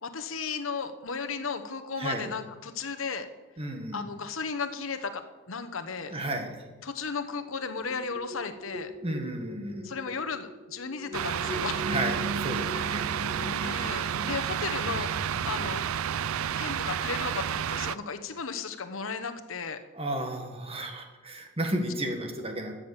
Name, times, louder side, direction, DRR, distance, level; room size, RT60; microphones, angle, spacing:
voice 1, 0.0-3.3 3.9-6.1 6.8-8.9 9.8-11.9 13.6-15.1 15.5-15.8 16.6-19.8, left 5 dB, 65° left, 8 dB, 1.0 m, -35 dB
voice 2, 3.6-4.0 6.0-6.6 9.0-9.9 11.9-13.6 19.9-22.7, right 1 dB, 25° right, 4 dB, 1.6 m, -33 dB
sound 1, 7.4-17.0, equal, 45° right, 1.5 m, -40 dB
sound 2, 11.1-18.0, right 9 dB, 75° right, 0.4 m, -31 dB
13.0 x 7.3 x 7.3 m, 1.2 s
head